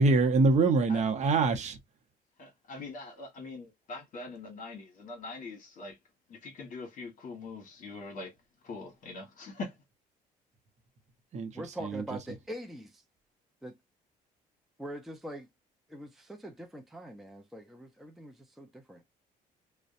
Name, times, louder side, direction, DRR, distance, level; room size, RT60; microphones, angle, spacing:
voice 1, 0.0-1.8 11.3-11.5 11.9-12.0, right 3 dB, 45° right, 0.7 m, -24 dB
voice 2, 2.4-6.0 6.3-8.3 8.6-9.7, left 3 dB, 50° left, 1.2 m, -43 dB
voice 3, 11.5-13.0 13.6-13.8 14.8-15.5 15.9-19.0, equal, ahead, 0.5 m, -43 dB
2.5 x 2.2 x 2.5 m
cardioid pair, 110°, 17 cm